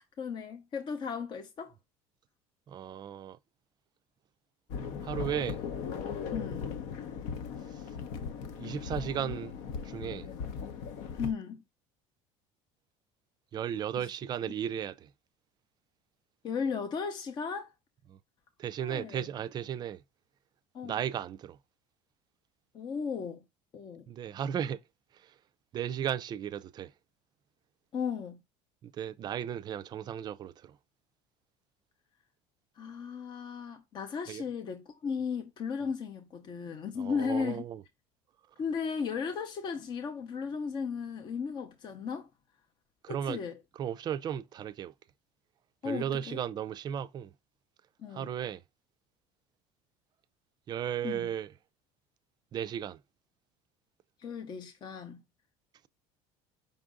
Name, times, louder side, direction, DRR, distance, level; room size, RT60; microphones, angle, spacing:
voice 1, 0.0-1.7 6.3-6.7 11.2-11.6 16.4-17.7 18.8-19.3 20.7-21.0 22.7-23.4 23.7-24.1 27.9-28.4 32.8-37.6 38.6-42.3 43.1-43.5 45.8-46.4 48.0-48.3 51.0-51.3 54.2-55.2, left 6 dB, 35° left, 0.6 m, -35 dB
voice 2, 2.7-3.4 5.0-5.6 7.7-7.8 8.5-9.5 9.8-10.3 13.5-15.1 18.1-18.2 18.6-20.0 20.8-21.6 24.1-24.8 25.1-25.4 25.7-26.9 28.8-30.8 34.3-34.4 37.0-37.8 43.0-43.4 43.7-44.9 45.8-47.3 48.1-48.6 50.7-51.5 52.5-53.0, right 9 dB, 30° right, 0.4 m, -35 dB
sound 1, 4.7-11.3, left 6 dB, 65° left, 0.7 m, -38 dB
5.3 x 2.5 x 3.6 m
cardioid pair, 135°, 13 cm